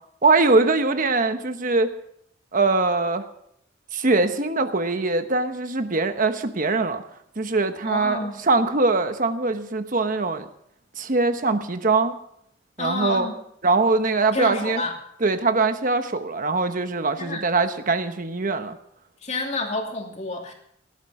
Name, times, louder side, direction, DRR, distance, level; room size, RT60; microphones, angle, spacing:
voice 1, 0.2-1.9 2.5-3.2 3.9-7.0 7.4-10.5 11.0-12.1 12.8-13.3 13.6-14.8 15.2-18.8, right 3 dB, 45° right, 8 dB, 1.1 m, -22 dB
voice 2, 7.8-8.4 12.8-13.3 14.3-14.9 17.2-17.4 19.2-20.5, left 2 dB, 35° left, 2 dB, 2.9 m, -29 dB
18.5 x 12.0 x 4.8 m, 0.69 s
head